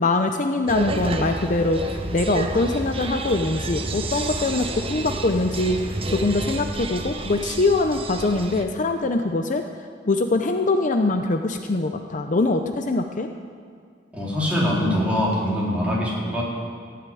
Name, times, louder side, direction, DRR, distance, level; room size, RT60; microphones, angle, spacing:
voice 1, 0.0-5.8 6.1-9.6 10.1-13.3, left 2 dB, 45° left, 6 dB, 0.7 m, -23 dB
sound 1, 0.7-8.6, right 2 dB, 30° right, 1.0 m, -30 dB
voice 2, 14.1-16.4, equal, 10° right, -6 dB, 4.2 m, -23 dB
15.5 x 9.5 x 9.2 m, 2.1 s
head